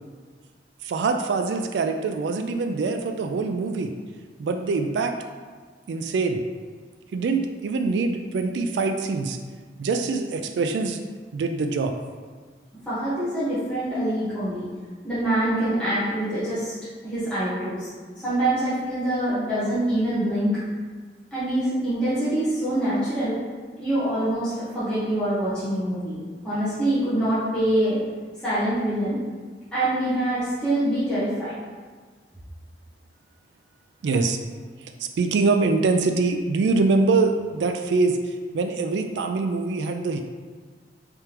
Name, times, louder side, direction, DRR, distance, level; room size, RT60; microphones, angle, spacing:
voice 1, 0.8-3.9 4.4-5.2 5.9-6.4 7.1-9.4 9.8-11.0 11.3-11.9 34.0-34.4 35.0-40.2, right 3 dB, 80° right, 5 dB, 0.3 m, -24 dB
voice 2, 12.8-14.7 15.0-16.7 17.0-17.9 18.1-20.6 21.3-23.4 23.8-26.2 26.4-28.0 28.4-29.2 29.7-31.5, right 1 dB, 5° left, -14 dB, 1.3 m, -25 dB
4.6 x 3.5 x 2.9 m, 1.5 s
head